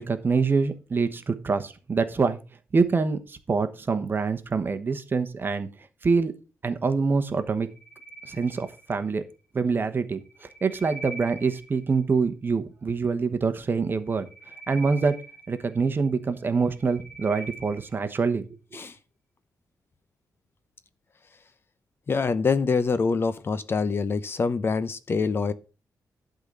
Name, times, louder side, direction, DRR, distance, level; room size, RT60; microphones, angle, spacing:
voice 1, 0.0-2.4 2.7-5.7 6.0-6.3 6.6-7.7 8.2-9.2 9.5-14.3 14.7-15.1 15.5-18.4, right 4 dB, 30° right, 1.1 m, -25 dB
sound 1, 7.7-9.2 10.1-12.0 14.0-16.1 16.5-18.1, right 3 dB, 20° left, 2.3 m, -44 dB
voice 2, 22.1-25.5, left 4 dB, 35° left, 0.7 m, -25 dB
11.5 x 3.9 x 6.8 m
wide cardioid pair, 145°, 6 cm